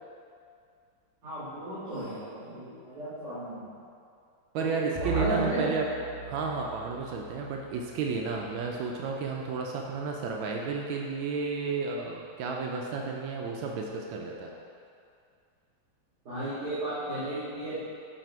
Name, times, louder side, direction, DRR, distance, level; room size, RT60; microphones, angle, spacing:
voice 1, 1.2-3.6 4.6-4.7 5.0-5.7 16.2-17.8, equal, 55° right, -13 dB, 2.3 m, -34 dB
voice 2, 4.5-5.9 6.3-14.5, right 4 dB, 90° right, 0 dB, 1.4 m, -32 dB
Bowed string instrument, 4.9-9.5, right 6 dB, 45° left, 0.4 m, -39 dB
6.6 x 4.1 x 4.6 m, 2.3 s
omnidirectional pair, 2.1 m